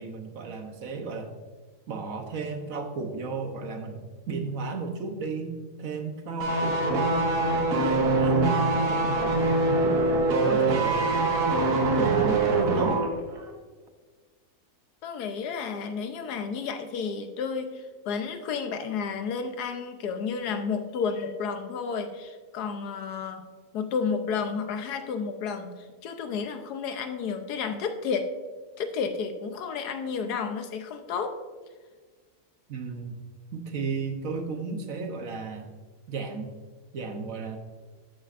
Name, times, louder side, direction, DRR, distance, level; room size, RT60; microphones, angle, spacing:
voice 1, 0.0-1.3 1.9-7.3 7.5-8.6 8.9-10.0 10.4-11.2 12.0-13.0 32.7-33.2 33.5-35.7 36.1-36.5 36.9-37.6, right 4 dB, 60° right, 5 dB, 1.3 m, -34 dB
sound 1, 6.4-13.1 13.4-13.5, right 2 dB, 85° right, 1.7 m, -24 dB
voice 2, 15.0-23.5 23.7-28.3 28.8-31.4, left 5 dB, 85° left, 7 dB, 1.3 m, -31 dB
13.0 x 7.7 x 2.5 m, 1.4 s
omnidirectional pair, 1.7 m